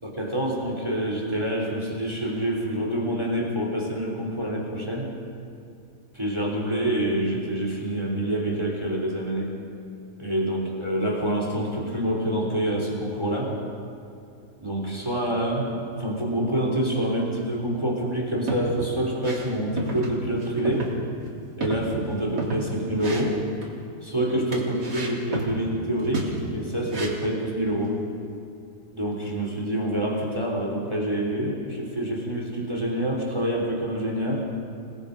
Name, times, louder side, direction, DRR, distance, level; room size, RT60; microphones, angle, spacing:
voice 1, 0.0-5.1 6.1-9.5 10.2-13.5 14.6-20.9 21.6-23.4 24.0-28.0 28.9-34.5, right 1 dB, 15° right, -1 dB, 3.3 m, -27 dB
sound 1, 18.3-18.8 19.2-19.5 19.8-20.1 20.4-20.9 21.2-21.3 21.6-22.7 23.0-23.8 24.5-25.6 26.0-26.4 26.9-27.3, right 2 dB, 70° right, 3.6 m, -32 dB
29.0 x 19.0 x 5.2 m, 2.6 s
omnidirectional pair, 1.9 m